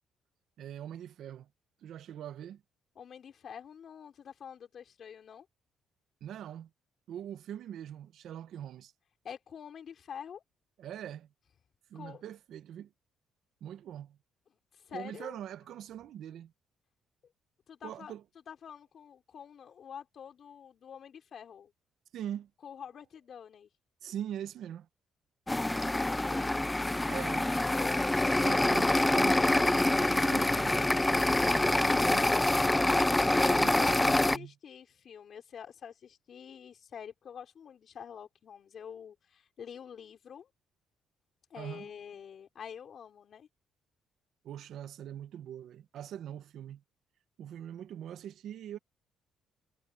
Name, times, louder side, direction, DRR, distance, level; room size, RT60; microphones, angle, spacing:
voice 1, 0.6-1.5 1.8-2.6 6.2-6.7 7.1-8.9 10.8-11.3 11.9-12.9 13.6-14.2 14.9-16.5 17.8-18.2 22.1-22.5 24.0-24.9 27.1-27.5 28.4-30.9 31.5-32.3 33.0-34.5 41.6-41.9 44.4-46.8 47.4-48.8, right 10 dB, 70° right, 1.1 m, -42 dB
voice 2, 2.9-5.5 9.2-10.4 11.9-12.2 14.7-15.4 17.7-18.1 18.5-21.7 22.6-23.7 25.6-26.6 26.9-28.1 33.8-40.5 41.5-43.5, left 8 dB, 50° left, 4.9 m, -47 dB
sound 1, 25.5-34.4, left 1 dB, 10° left, 0.4 m, -26 dB
cardioid pair, 110°, 0 cm